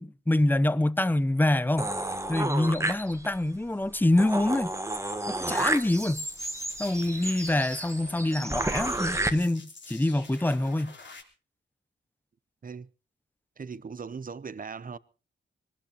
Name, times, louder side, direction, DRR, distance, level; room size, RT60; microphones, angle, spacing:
voice 1, 0.0-1.9 2.3-4.7 5.3-6.3 6.8-10.9, left 1 dB, 10° left, 0.7 m, -26 dB
sound 1, 1.8-3.5 3.9-4.0 4.2-9.3, right 1 dB, 15° right, 1.4 m, -31 dB
sound 2, 5.4-11.2, left 4 dB, 60° left, 3.5 m, -49 dB
voice 2, 13.6-15.0, right 5 dB, 40° right, 0.7 m, -39 dB
23.5 x 19.0 x 2.9 m
wide cardioid pair, 85°, 21 cm